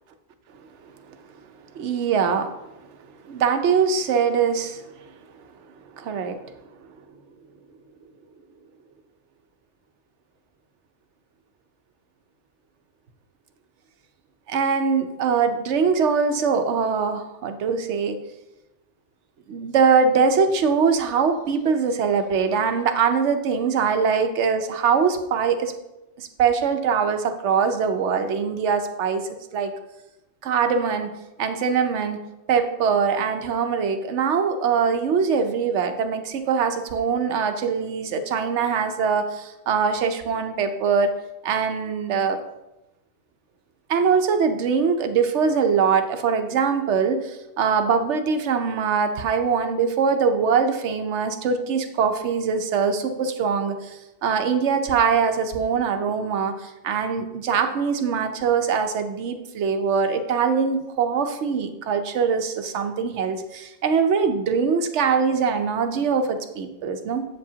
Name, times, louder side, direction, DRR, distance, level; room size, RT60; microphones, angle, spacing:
voice 1, 1.7-2.5 3.3-4.9 6.0-6.4 14.5-18.2 19.5-25.7 26.2-29.2 29.5-29.7 30.4-31.1 31.4-32.2 32.5-41.1 41.4-42.4 43.9-67.2, right 6 dB, 65° right, 7 dB, 1.0 m, -22 dB
8.0 x 7.5 x 2.8 m, 0.94 s
omnidirectional pair, 1.4 m